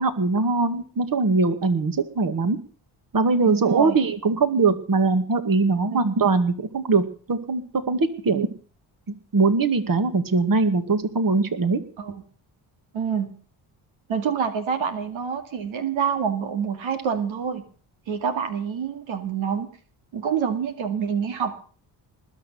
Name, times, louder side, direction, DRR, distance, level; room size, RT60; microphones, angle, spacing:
voice 1, 0.0-2.6 3.1-7.0 7.3-7.6 7.9-8.5 9.3-11.8, right 4 dB, 45° right, 10 dB, 2.3 m, -21 dB
voice 2, 3.5-4.0 5.9-6.0 8.3-8.5 12.0-12.2 12.9-13.3 14.1-17.6 18.1-19.7 20.1-21.5, right 7 dB, 80° right, 7 dB, 2.3 m, -27 dB
20.0 x 6.8 x 9.5 m, 0.42 s
cardioid pair, 65°, 46 cm